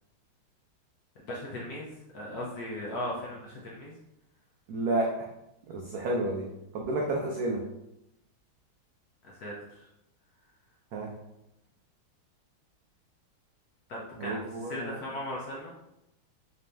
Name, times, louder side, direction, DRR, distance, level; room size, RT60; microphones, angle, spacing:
voice 1, 1.2-3.9 9.2-9.9 13.9-15.7, left 1 dB, 65° left, -3 dB, 0.9 m, -38 dB
voice 2, 4.7-5.3 5.7-6.5 6.7-7.6 10.9-11.1 14.2-15.0, right 2 dB, 85° right, -1 dB, 0.8 m, -30 dB
4.1 x 2.6 x 3.3 m, 0.86 s
omnidirectional pair, 2.3 m